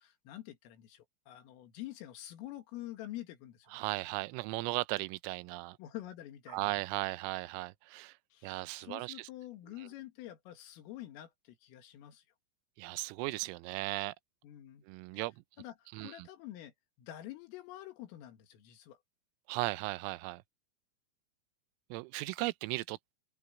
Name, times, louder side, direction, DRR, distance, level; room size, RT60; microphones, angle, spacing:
voice 1, 0.0-3.8 5.8-6.6 8.3-12.2 14.4-14.9 15.6-16.7 17.0-19.0, left 14 dB, 85° left, 4.7 m, -47 dB
voice 2, 3.7-5.8 6.5-8.2 8.4-9.3 9.8-9.9 12.8-14.1 14.9-15.4 15.9-16.3 19.5-20.4 21.9-23.1, right 21 dB, 90° right, 3.3 m, -37 dB
open air
omnidirectional pair, 5.8 m